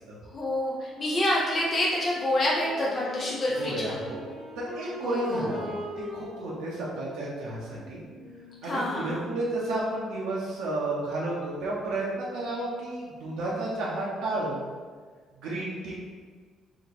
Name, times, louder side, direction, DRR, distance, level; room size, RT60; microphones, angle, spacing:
voice 1, 0.3-3.9 5.0-5.8 8.6-9.2, left 1 dB, 35° left, -5 dB, 0.6 m, -28 dB
Wind instrument woodwind instrument, 2.5-9.2, left 2 dB, 60° left, 0.9 m, -42 dB
voice 2, 3.6-4.2 4.6-8.0 8.6-14.7 15.4-15.9, right 2 dB, 85° right, -6 dB, 0.7 m, -32 dB
2.9 x 2.2 x 4.0 m, 1.5 s
cardioid pair, 100°, 0 cm